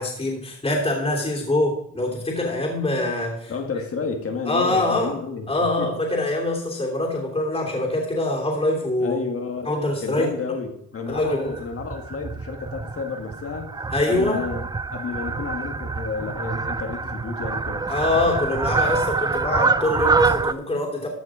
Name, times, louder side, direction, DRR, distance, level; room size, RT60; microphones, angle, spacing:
voice 1, 0.0-3.5 4.5-5.2 5.5-9.2 9.6-10.3 11.1-11.5 13.9-14.4 17.9-21.1, left 2 dB, 20° left, -2 dB, 3.2 m, -24 dB
voice 2, 3.5-6.0 9.0-9.7 10.0-17.9, left 4 dB, 50° left, 5 dB, 1.9 m, -31 dB
Fowl, 11.1-20.5, right 4 dB, 15° right, 0.4 m, -26 dB
14.0 x 6.3 x 5.0 m, 0.70 s
cardioid pair, 90°, 30 cm